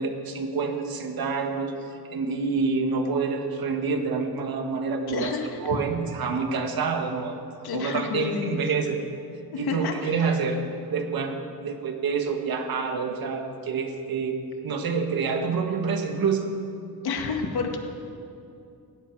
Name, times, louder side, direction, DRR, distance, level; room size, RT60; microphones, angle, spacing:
voice 1, 0.0-5.3 5.6-7.4 7.7-9.0 9.6-10.6 10.9-14.4 14.6-16.5, right 5 dB, 65° right, 4 dB, 1.8 m, -27 dB
voice 2, 5.1-5.8 7.6-8.6 9.5-10.3 17.0-17.8, left 5 dB, 75° left, 3 dB, 2.0 m, -30 dB
18.5 x 16.5 x 4.8 m, 2.6 s
cardioid pair, 140°, 38 cm